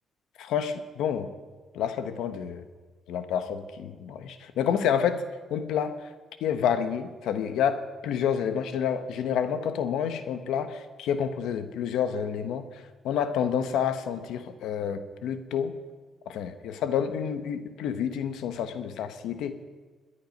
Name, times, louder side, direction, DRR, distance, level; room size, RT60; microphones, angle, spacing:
voice 1, 0.4-1.3 1.7-2.6 3.1-5.2 5.5-5.9 6.4-12.7 13.0-15.7 16.3-19.6, left 8 dB, 85° left, 10 dB, 1.1 m, -29 dB
21.5 x 10.5 x 5.3 m, 1.4 s
cardioid pair, 90°, 0 cm